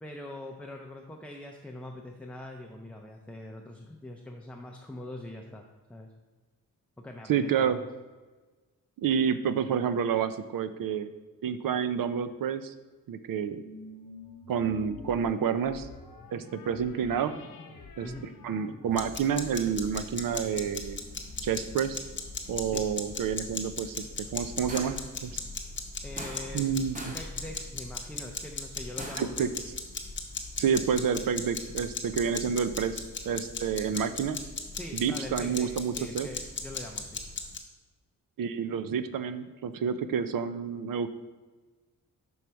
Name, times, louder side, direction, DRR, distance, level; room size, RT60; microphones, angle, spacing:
voice 1, 0.0-5.6 5.9-6.1 7.0-7.8 18.0-18.3 22.7-22.8 26.0-26.7 27.1-29.4 34.7-37.2, left 1 dB, 5° left, 1 dB, 0.4 m, -43 dB
voice 2, 7.3-7.8 9.0-11.1 11.4-12.7 13.1-13.6 14.5-15.9 16.3-17.3 18.0-21.0 21.4-22.0 22.5-25.4 26.5-27.1 29.2-29.5 30.6-34.4 34.9-36.3 38.4-41.1, right 7 dB, 80° right, 11 dB, 0.5 m, -29 dB
sound 1, 13.6-22.3, left 2 dB, 75° left, 0.9 m, -48 dB
sound 2, 18.9-37.6, left 4 dB, 35° left, 0.7 m, -37 dB
sound 3, 24.7-25.1 26.2-26.7 27.0-27.4 29.0-29.4, right 1 dB, 25° right, 0.9 m, -41 dB
6.2 x 5.5 x 4.5 m, 1.3 s
wide cardioid pair, 170°, 33 cm